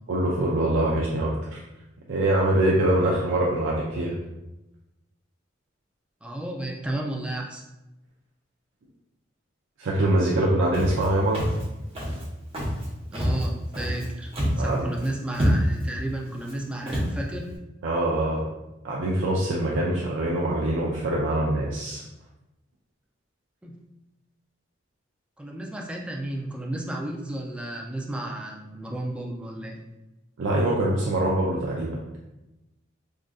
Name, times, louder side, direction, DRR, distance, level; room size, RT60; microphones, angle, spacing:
voice 1, 0.1-1.6 2.1-4.2 9.8-11.4 14.6-14.9 17.8-18.5 18.8-22.0 30.4-32.0, right 1 dB, 75° right, -4 dB, 0.4 m, -24 dB
voice 2, 6.2-7.6 13.1-14.3 14.6-17.5 23.6-23.8 25.4-29.8, right 1 dB, 5° right, -1 dB, 0.3 m, -33 dB
Walk footsteps, 10.7-11.1 11.3-11.6 11.9-12.2 12.5-12.9 13.1-14.0 14.3-14.7 15.0-15.1 15.3-15.9 16.4-16.5 16.9-17.1, equal, 30° right, 0.9 m, -26 dB
3.6 x 2.5 x 2.3 m, 0.98 s
head